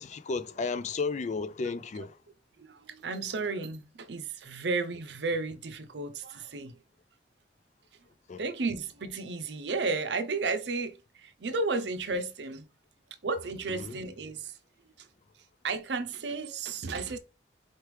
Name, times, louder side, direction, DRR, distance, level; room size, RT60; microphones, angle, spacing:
voice 1, 0.0-2.2 8.3-8.4 13.7-14.0, left 4 dB, 40° left, 0.4 m, -33 dB
voice 2, 2.6-6.7 8.4-12.7 13.2-14.5 15.0-15.1 15.6-17.2, right 3 dB, 70° right, 0.6 m, -33 dB
4.5 x 3.1 x 3.3 m
head